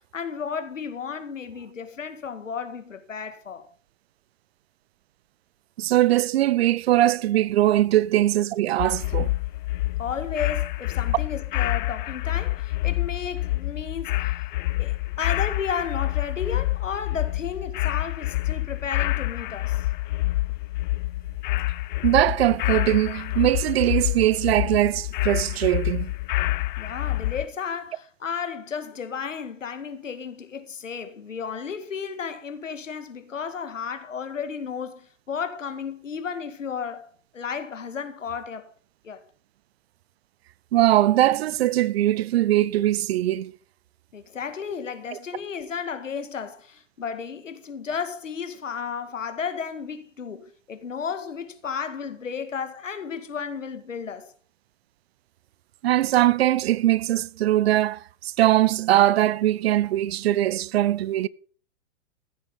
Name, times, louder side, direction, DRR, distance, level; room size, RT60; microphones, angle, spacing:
voice 1, 0.1-3.7 10.0-14.4 14.8-19.9 26.8-37.1 37.3-38.7 39.0-39.2 44.1-54.3, left 6 dB, 80° left, 2.1 m, -33 dB
voice 2, 5.8-9.3 22.0-26.1 40.7-43.5 55.8-61.3, right 14 dB, 55° right, 0.7 m, -21 dB
sound 1, 8.8-27.5, left 18 dB, 40° left, 0.5 m, -27 dB
14.5 x 8.4 x 5.5 m
hypercardioid pair, 115°, 37 cm